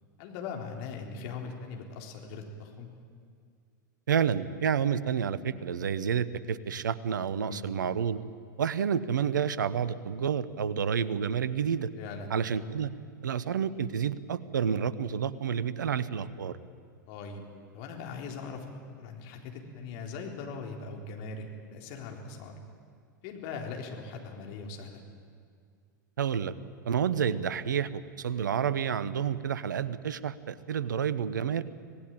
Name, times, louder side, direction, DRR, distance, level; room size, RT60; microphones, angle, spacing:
voice 1, 0.2-2.9 7.5-7.6 12.0-12.3 17.1-17.4 17.7-18.7 19.0-22.6 23.2-25.0, left 4 dB, 45° left, 2 dB, 3.8 m, -40 dB
voice 2, 4.1-8.2 8.6-11.9 12.3-12.9 13.2-16.6 26.2-26.5 26.8-31.6, right 7 dB, 70° right, 17 dB, 1.0 m, -29 dB
26.0 x 18.5 x 8.9 m, 2.2 s
figure-of-eight pair, 95°, 11 cm